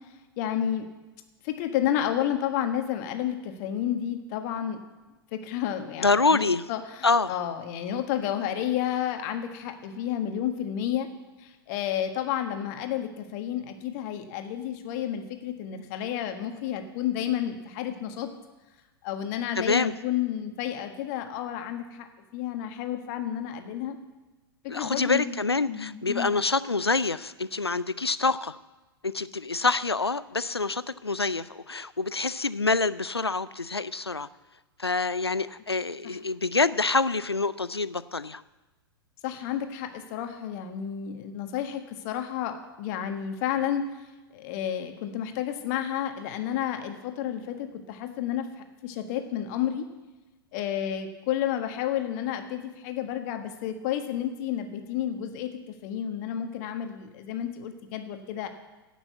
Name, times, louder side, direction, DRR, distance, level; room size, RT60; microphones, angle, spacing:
voice 1, 0.4-0.9 1.4-4.8 5.3-11.1 11.4-18.3 19.0-22.1 22.3-24.0 24.6-25.3 25.7-26.3 36.0-36.2 39.2-43.9 44.3-49.9 50.5-58.5, left 10 dB, 45° left, 6 dB, 1.5 m, -31 dB
voice 2, 6.0-6.6 7.0-7.3 19.6-19.9 24.7-28.6 29.0-34.3 34.8-38.4, left 3 dB, 90° left, 17 dB, 0.5 m, -26 dB
16.0 x 6.2 x 8.2 m, 1.1 s
figure-of-eight pair, 100°, 13 cm